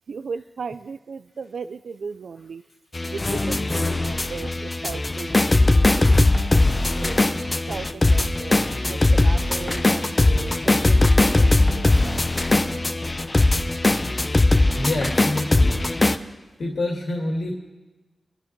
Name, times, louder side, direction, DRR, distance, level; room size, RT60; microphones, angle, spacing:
voice 1, 0.1-2.6 3.5-3.6 3.9-4.5 4.8-5.3 5.7-6.1 7.0-7.2 7.7-9.0 9.2-10.0 10.3-10.6 11.2-11.9, right 5 dB, 80° right, 13 dB, 0.4 m, -35 dB
sound 1, 2.9-16.2, left 2 dB, 35° left, 0.9 m, -20 dB
voice 2, 5.9-6.6 14.8-15.8 16.6-17.5, left 1 dB, 80° left, 0 dB, 2.5 m, -27 dB
24.0 x 11.0 x 4.6 m, 1.2 s
cardioid pair, 45°, 0 cm